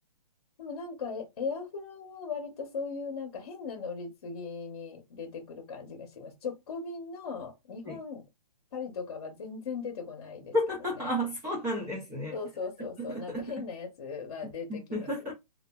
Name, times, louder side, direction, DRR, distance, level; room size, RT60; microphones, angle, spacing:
voice 1, 0.6-8.2 8.7-10.5 11.0-11.1 12.3-15.3, left 5 dB, 45° left, 0.8 m, -38 dB
voice 2, 10.5-12.4 13.1-13.7 14.7-15.3, equal, 10° right, 0.3 m, -32 dB
2.5 x 2.4 x 2.2 m
hypercardioid pair, 160°, 20 cm